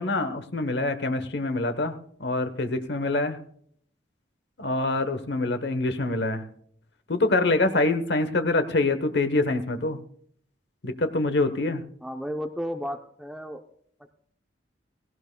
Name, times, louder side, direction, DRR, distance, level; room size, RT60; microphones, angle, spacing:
voice 1, 0.0-3.4 4.6-6.4 7.1-10.0 10.8-11.8, left 2 dB, 65° left, 9 dB, 1.0 m, -25 dB
voice 2, 12.0-13.6, equal, ahead, 4 dB, 0.6 m, -33 dB
17.5 x 17.0 x 2.2 m, 0.63 s
head